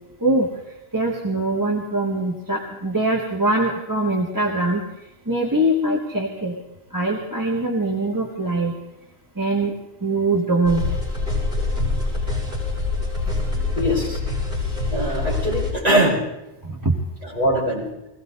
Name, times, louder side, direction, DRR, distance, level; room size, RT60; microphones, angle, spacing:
voice 1, 0.9-6.6 6.9-8.7 9.3-9.7 10.0-10.8 16.6-17.0, right 2 dB, 20° right, -1 dB, 1.4 m, -22 dB
sound 1, 10.6-15.7, left 3 dB, 65° right, 6.6 m, -25 dB
voice 2, 13.7-14.2 14.9-16.2 17.2-17.9, equal, 35° right, -6 dB, 5.2 m, -21 dB
21.5 x 17.0 x 4.0 m, 0.94 s
omnidirectional pair, 1.1 m